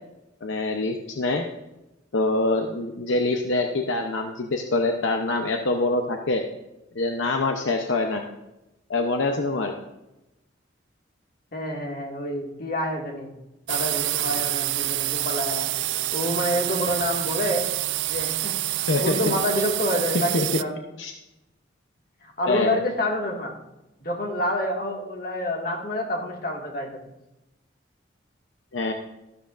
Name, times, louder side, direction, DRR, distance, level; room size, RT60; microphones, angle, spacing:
voice 1, 0.4-1.4 2.1-6.4 6.9-8.2 8.9-9.7 18.9-19.2 20.3-20.5 21.0-21.1 22.5-22.8 28.7-28.9, left 2 dB, 75° left, 4 dB, 0.8 m, -25 dB
voice 2, 11.5-13.3 13.7-15.7 16.1-17.7 18.1-18.5 18.8-20.7 22.2-23.5 24.0-27.0, left 1 dB, 45° left, 0 dB, 2.0 m, -28 dB
sound 1, 13.7-20.6, right 15 dB, 65° right, 0.4 m, -27 dB
13.0 x 12.5 x 2.5 m, 0.96 s
head